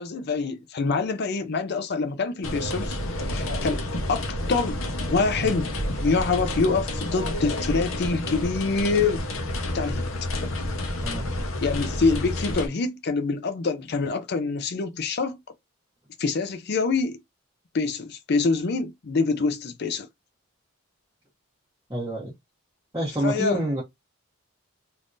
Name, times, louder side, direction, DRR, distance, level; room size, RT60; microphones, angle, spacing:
voice 1, 0.0-3.0 3.3-4.8 5.1-5.7 6.0-9.2 9.7-10.1 11.6-15.4 16.2-17.2 17.7-20.1 23.2-23.6, left 4 dB, 50° left, 0.5 m, -25 dB
sound 1, 2.4-12.7, left 1 dB, 75° left, 0.8 m, -29 dB
voice 2, 21.9-22.3 22.9-23.8, equal, 15° right, 1.0 m, -27 dB
3.5 x 2.6 x 2.5 m
head